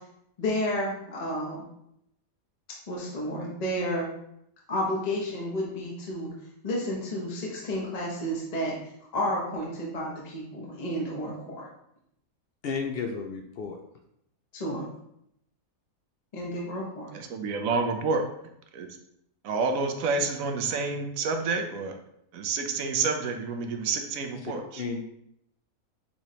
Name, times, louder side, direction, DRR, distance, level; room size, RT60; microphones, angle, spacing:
voice 1, 0.4-1.6 2.9-4.1 4.7-6.3 6.6-8.7 9.1-11.7 14.5-14.9 16.3-17.1, equal, 35° left, -3 dB, 0.8 m, -31 dB
voice 2, 12.6-13.8 24.4-25.0, left 5 dB, 65° left, 4 dB, 0.6 m, -33 dB
voice 3, 17.1-18.2 18.7-18.9 19.4-21.9 22.3-24.8, right 4 dB, 75° right, 5 dB, 1.0 m, -28 dB
5.9 x 3.1 x 2.8 m, 0.76 s
omnidirectional pair, 1.5 m